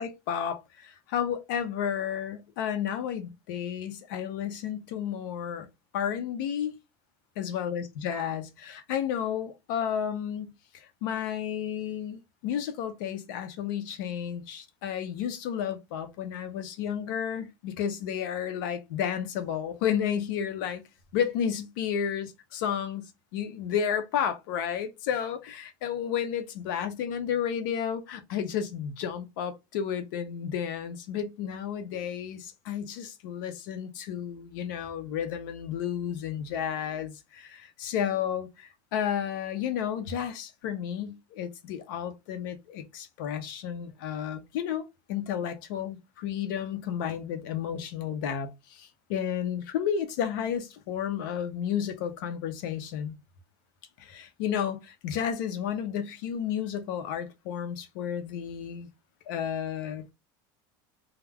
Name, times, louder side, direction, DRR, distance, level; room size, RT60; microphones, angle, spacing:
voice 1, 0.0-5.7 5.9-6.8 7.4-20.8 21.1-53.1 54.0-58.9 59.3-60.0, left 8 dB, 75° left, 0.6 m, -32 dB
2.3 x 2.1 x 3.3 m
cardioid pair, 170°, 11 cm